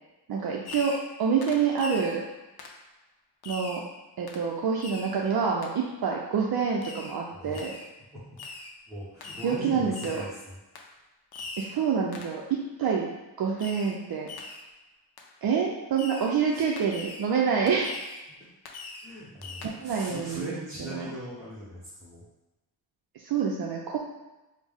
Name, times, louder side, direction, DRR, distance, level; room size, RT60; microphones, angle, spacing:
voice 1, 0.3-2.2 3.5-3.8 4.2-7.7 9.4-10.2 11.6-13.1 13.4-14.3 15.4-18.0 19.6-20.5 20.8-21.1 23.2-24.0, right 6 dB, 55° right, -2 dB, 0.5 m, -27 dB
Fireworks, 0.6-1.1 1.4-2.2 2.6-2.8 3.4-3.9 4.3-4.5 4.8-5.2 5.6-5.7 6.8-7.2 7.5-7.9 8.4-8.7 9.2-9.6 9.9-10.3 10.7-10.9 11.3-11.8 12.1-12.4 13.6-14.0 14.3-14.7 15.2-15.3 16.0-16.3 16.8-17.3 17.7-18.2 18.6-19.1 19.4-19.7, left 3 dB, 60° left, 0.6 m, -41 dB
voice 2, 8.9-10.6 16.5-16.6 19.0-22.3, equal, 5° right, -11 dB, 0.8 m, -40 dB
5.1 x 2.1 x 3.5 m, 1.1 s
wide cardioid pair, 140°, 45 cm